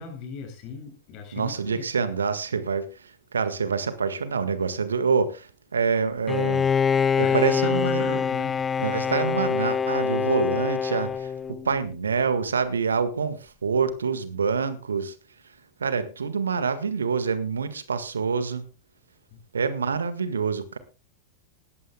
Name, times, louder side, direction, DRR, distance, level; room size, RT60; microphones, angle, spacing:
voice 1, 0.0-1.9 7.2-9.0 19.3-19.4, left 5 dB, 40° left, 7.6 m, -39 dB
voice 2, 1.3-6.7 7.2-8.2 8.8-15.1 15.8-18.7 19.5-20.8, right 5 dB, 70° right, 1.7 m, -26 dB
Bowed string instrument, 6.3-11.8, left 6 dB, 15° left, 0.5 m, -25 dB
19.5 x 15.0 x 2.3 m
figure-of-eight pair, 90°, 0 cm